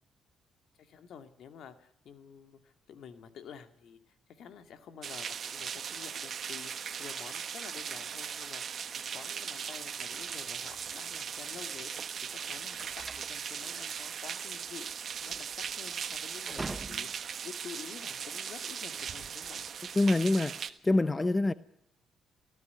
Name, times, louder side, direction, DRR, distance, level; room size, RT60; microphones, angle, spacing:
voice 1, 0.8-11.9 12.3-19.6, left 7 dB, 70° left, 2.3 m, -50 dB
sound 1, 5.0-20.7, right 7 dB, 55° right, 1.3 m, -39 dB
sound 2, 11.4-17.4, right 3 dB, 20° right, 0.7 m, -45 dB
voice 2, 19.9-21.5, left 2 dB, 20° left, 0.8 m, -26 dB
19.5 x 14.5 x 9.4 m
cardioid pair, 90°, 0 cm